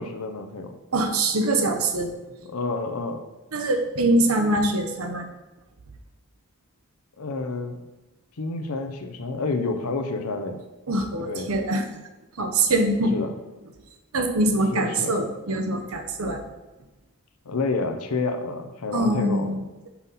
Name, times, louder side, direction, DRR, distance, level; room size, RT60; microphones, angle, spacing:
voice 1, 0.0-0.7 2.5-3.2 7.2-7.7 8.4-10.6 11.3-11.5 13.1-13.3 14.7-15.1 17.4-19.5, left 3 dB, 90° left, 7 dB, 0.7 m, -29 dB
voice 2, 0.9-2.1 3.5-5.3 10.9-11.8 12.4-13.2 14.1-16.4 18.9-19.9, right 1 dB, 80° right, 5 dB, 0.9 m, -23 dB
5.8 x 5.6 x 4.1 m, 1.1 s
head